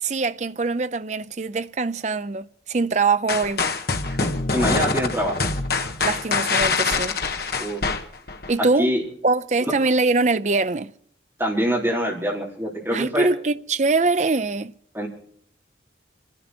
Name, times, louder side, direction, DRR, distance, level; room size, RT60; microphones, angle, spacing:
voice 1, 0.0-3.7 6.0-7.2 8.5-8.9 9.2-10.9 12.9-14.7, right 3 dB, 40° right, 0.5 m, -23 dB
sound 1, 3.3-8.5, left 4 dB, 55° left, 1.3 m, -24 dB
voice 2, 4.1-5.5 7.6-7.8 8.6-9.0 9.6-9.7 11.4-13.3 14.9-15.1, equal, 15° right, 4.1 m, -25 dB
27.5 x 11.0 x 4.4 m
head